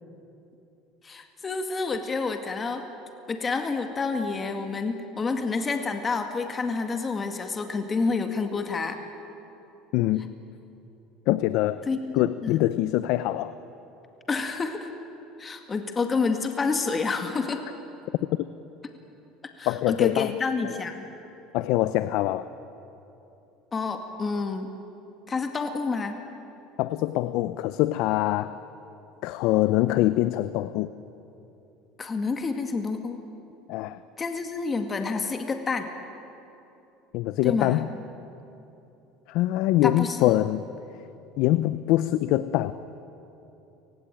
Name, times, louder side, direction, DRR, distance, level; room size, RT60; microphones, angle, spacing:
voice 1, 1.0-2.8 3.3-9.0 11.9-12.6 14.3-14.9 15.4-17.6 19.6-21.0 23.7-24.7 25.3-26.2 32.0-33.2 34.2-35.9 37.4-37.8 39.8-40.3, left 4 dB, 25° left, 6 dB, 2.1 m, -28 dB
voice 2, 9.9-10.3 11.3-11.8 12.1-13.5 19.7-20.3 20.6-20.8 21.5-22.5 26.8-28.6 29.2-30.9 33.7-34.0 37.1-37.9 39.3-40.6 41.4-42.7, left 15 dB, 65° left, 14 dB, 0.7 m, -24 dB
30.0 x 19.0 x 9.2 m, 2.9 s
supercardioid pair, 120°, 0 cm